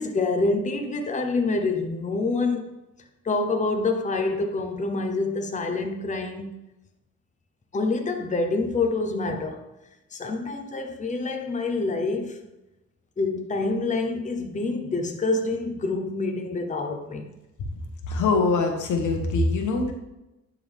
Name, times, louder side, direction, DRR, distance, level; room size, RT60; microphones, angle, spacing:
voice 1, 0.0-2.6 3.2-6.6 7.7-9.6 10.1-12.4 13.2-17.3, left 3 dB, 25° left, 4 dB, 0.9 m, -26 dB
voice 2, 18.1-19.9, left 3 dB, 75° left, 3 dB, 1.3 m, -23 dB
10.5 x 3.9 x 3.5 m, 0.95 s
cardioid pair, 90°, 30 cm